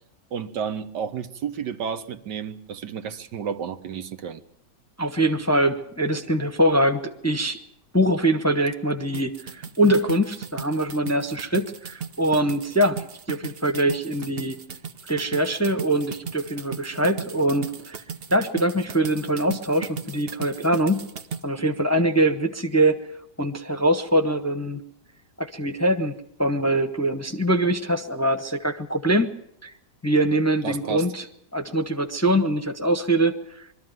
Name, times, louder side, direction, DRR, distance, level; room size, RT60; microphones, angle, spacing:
voice 1, 0.3-4.4 30.6-31.0, right 7 dB, 80° right, 10 dB, 1.7 m, -31 dB
voice 2, 5.0-7.6 7.9-14.6 15.1-18.0 18.3-21.0 21.4-23.0 23.4-24.8 25.4-26.1 26.4-29.3 29.6-29.7 30.0-31.3 31.5-33.7, right 1 dB, 10° left, 7 dB, 0.8 m, -23 dB
sound 1, 9.1-21.4, right 6 dB, 45° right, 0.9 m, -37 dB
23.0 x 13.5 x 9.2 m, 0.78 s
omnidirectional pair, 1.8 m